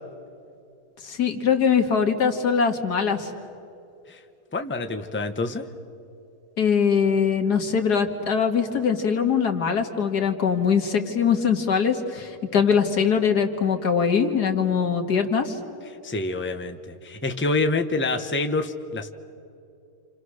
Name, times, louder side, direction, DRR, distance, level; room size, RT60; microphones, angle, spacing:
voice 1, 1.0-3.3 6.6-15.6, left 6 dB, 90° left, 5 dB, 2.3 m, -22 dB
voice 2, 4.5-5.6 16.0-19.1, left 3 dB, 10° left, 6 dB, 0.9 m, -27 dB
29.0 x 28.0 x 6.5 m, 2.7 s
omnidirectional pair, 1.7 m